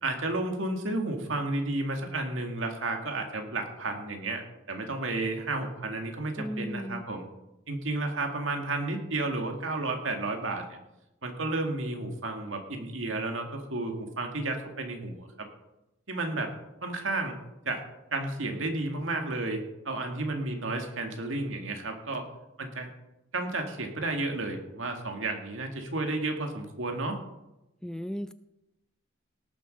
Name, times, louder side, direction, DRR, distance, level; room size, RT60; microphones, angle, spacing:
voice 1, 0.0-7.3 7.7-10.8 11.2-15.3 16.1-16.5 16.8-17.4 17.7-17.8 18.1-22.2 22.6-22.9 23.3-27.2, right 2 dB, 85° right, 3 dB, 2.1 m, -32 dB
voice 2, 6.4-7.0 27.8-28.3, equal, 5° left, 12 dB, 0.3 m, -35 dB
18.0 x 7.1 x 5.4 m, 0.94 s
head